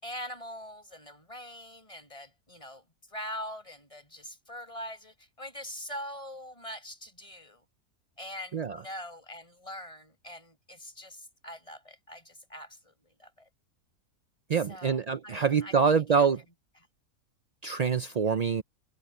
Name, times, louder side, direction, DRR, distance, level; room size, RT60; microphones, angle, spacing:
voice 1, 0.0-7.6 8.2-13.5 14.7-15.8 16.2-16.3, equal, 20° left, 6.1 m, -43 dB
voice 2, 14.5-16.4 17.6-18.6, right 6 dB, 70° right, 0.3 m, -25 dB
omnidirectional pair, 1.6 m